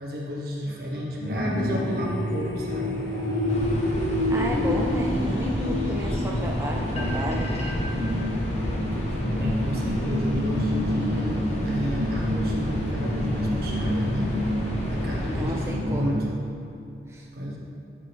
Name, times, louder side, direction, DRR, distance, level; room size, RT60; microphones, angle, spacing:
voice 1, 0.0-3.0 9.4-14.3 14.9-16.4 17.3-17.6, equal, 55° right, -3 dB, 1.4 m, -32 dB
sound 1, 1.2-16.1, left 1 dB, 90° left, 1.4 m, -28 dB
sound 2, 3.5-15.7, equal, 35° left, 1.1 m, -30 dB
voice 2, 4.3-7.5 15.3-16.2 17.1-17.3, right 1 dB, 15° right, -1 dB, 0.4 m, -33 dB
11.5 x 6.2 x 3.6 m, 2.5 s
head